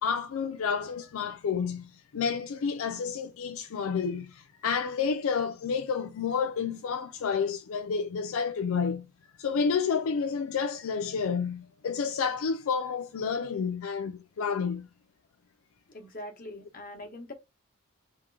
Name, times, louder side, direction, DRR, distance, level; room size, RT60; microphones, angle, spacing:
voice 1, 0.0-9.1 9.4-14.9, left 6 dB, 70° left, 0.4 m, -30 dB
voice 2, 15.9-17.3, left 1 dB, 40° left, 1.3 m, -42 dB
3.6 x 2.9 x 4.6 m
head